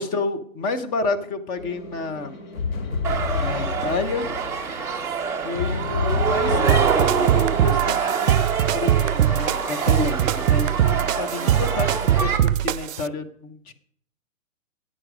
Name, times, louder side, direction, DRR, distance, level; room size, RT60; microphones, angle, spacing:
voice 1, 0.0-2.3 3.3-4.3 5.4-8.4 8.7-13.7, left 3 dB, 20° left, 7 dB, 0.9 m, -30 dB
sound 1, 1.6-8.3, left 4 dB, 70° left, 2.6 m, -30 dB
sound 2, 3.0-12.4, right 6 dB, 5° right, 0.6 m, -25 dB
sound 3, 6.7-13.1, right 11 dB, 65° right, 0.5 m, -22 dB
13.5 x 8.8 x 5.0 m, 0.63 s
hypercardioid pair, 135°, 42 cm